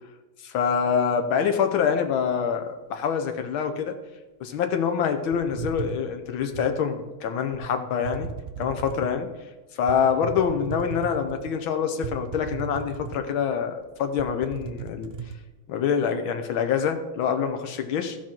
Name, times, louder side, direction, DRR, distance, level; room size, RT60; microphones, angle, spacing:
voice 1, 0.4-4.0 4.4-8.3 8.6-9.3 9.8-15.1 15.7-18.2, left 7 dB, 80° left, 7 dB, 1.7 m, -25 dB
sound 1, 5.3-6.8 7.5-7.7 8.0-9.2 9.9-11.5 12.0-13.5 13.8-13.9 14.2-15.4, right 7 dB, 90° right, 0.5 m, -36 dB
15.0 x 5.0 x 4.5 m, 1.2 s
omnidirectional pair, 2.2 m